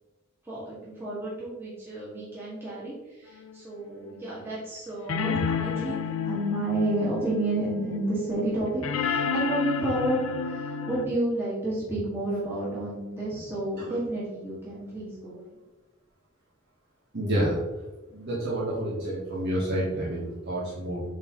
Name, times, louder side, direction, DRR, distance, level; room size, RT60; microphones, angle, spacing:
voice 1, 0.4-15.4, right 1 dB, 10° right, -10 dB, 1.9 m, -30 dB
sound 1, 3.5-3.6 5.1-11.1, left 6 dB, 70° left, 0.5 m, -31 dB
voice 2, 17.1-17.6 18.1-21.0, right 1 dB, 50° right, -7 dB, 1.3 m, -29 dB
7.9 x 4.0 x 3.1 m, 1.1 s
head